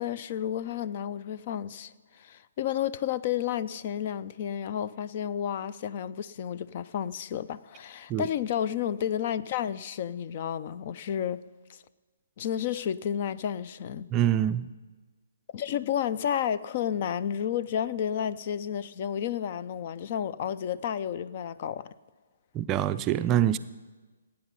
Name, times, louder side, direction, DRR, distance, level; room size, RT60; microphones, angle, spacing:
voice 1, 0.0-11.4 12.4-14.1 15.5-21.9, left 9 dB, 40° left, 0.5 m, -31 dB
voice 2, 14.1-14.7 22.5-23.6, right 11 dB, 25° right, 0.4 m, -25 dB
17.5 x 8.9 x 5.5 m
figure-of-eight pair, 135°, 0 cm